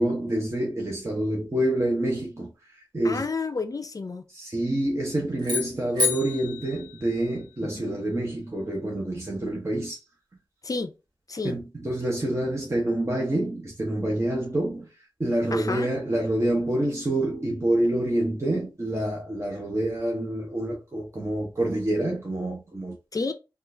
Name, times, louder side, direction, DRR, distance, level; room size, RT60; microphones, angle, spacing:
voice 1, 0.0-2.5 2.9-3.3 4.3-10.0 11.4-14.9 15.2-23.0, right 1 dB, 35° right, 0.9 m, -27 dB
voice 2, 3.0-4.2 7.6-8.0 10.6-10.9 11.3-11.6 15.5-15.9 23.1-23.3, left 3 dB, 45° left, 0.5 m, -30 dB
sound 1, 5.4-7.7, left 4 dB, 60° right, 1.9 m, -30 dB
3.7 x 2.4 x 2.6 m
wide cardioid pair, 70°, 8 cm